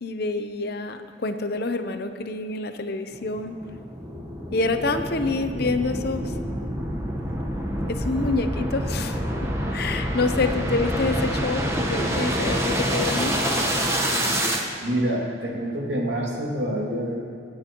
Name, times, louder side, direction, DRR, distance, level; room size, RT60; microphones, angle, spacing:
voice 1, 0.0-3.6 4.5-6.3 7.9-13.3, left 3 dB, 55° left, 8 dB, 0.7 m, -27 dB
sound 1, 3.1-14.6, equal, 15° right, 1.2 m, -27 dB
voice 2, 14.8-17.2, right 1 dB, 70° right, -2 dB, 2.5 m, -26 dB
25.0 x 9.6 x 3.0 m, 2.4 s
head